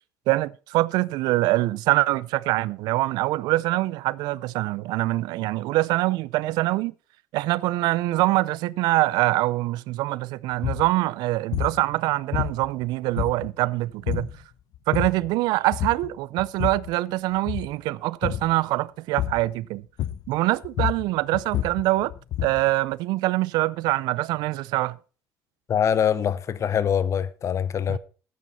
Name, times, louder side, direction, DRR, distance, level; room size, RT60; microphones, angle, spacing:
voice 1, 0.3-6.9 7.3-14.3 14.9-19.8 20.3-22.1 22.4-25.0 27.9-28.0, right 18 dB, 80° right, 0.5 m, -24 dB
sound 1, 10.5-10.9 11.5-11.8 12.3-12.8 13.2-13.6 14.1-14.4 14.7-15.3 15.7-16.1 16.4-16.9 17.4-17.8 18.2-18.5 19.2-19.5 20.0-20.4 20.6-22.7, left 11 dB, 65° left, 1.0 m, -29 dB
voice 2, 25.7-28.0, left 8 dB, 45° left, 1.0 m, -23 dB
13.5 x 9.4 x 4.3 m
cardioid pair, 100°, 7 cm